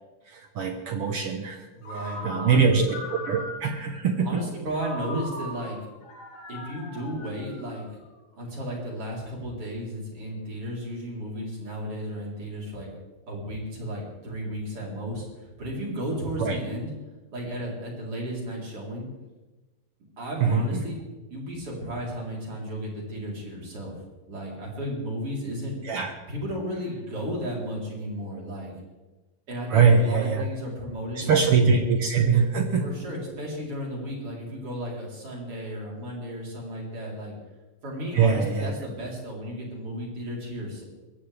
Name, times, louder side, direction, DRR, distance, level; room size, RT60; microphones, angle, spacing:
voice 1, 0.3-1.7 2.2-2.9 3.2-4.4 5.1-5.2 16.4-16.6 20.4-20.8 25.8-26.1 29.7-30.4 31.2-32.9 38.1-38.8, right 5 dB, 65° right, 4 dB, 1.5 m, -22 dB
voice 2, 1.7-2.9 4.2-5.8 6.5-7.8 8.4-12.9 13.3-16.9 17.3-19.1 20.2-21.0 21.3-25.8 26.3-28.7 29.5-31.6 32.8-37.3 37.8-40.8, equal, 40° right, -3 dB, 4.5 m, -34 dB
Ringtone, 1.8-3.9 4.7-8.1, left 1 dB, 75° left, 4.7 m, -40 dB
22.0 x 15.5 x 3.4 m, 1.1 s
omnidirectional pair, 4.1 m